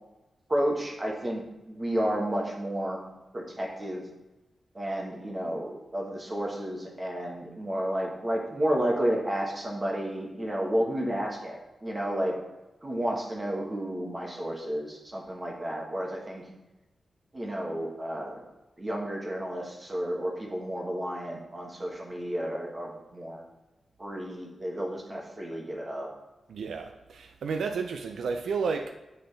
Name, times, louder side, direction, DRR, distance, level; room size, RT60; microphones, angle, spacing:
voice 1, 0.5-3.0 3.3-4.0 4.7-12.4 12.8-16.5 17.3-18.4 18.8-23.4 24.0-26.1, right 1 dB, 25° right, 1.4 m, -31 dB
voice 2, 26.5-28.9, right 5 dB, 90° right, 0.4 m, -31 dB
8.7 x 3.9 x 3.3 m
wide cardioid pair, 110°, 0 cm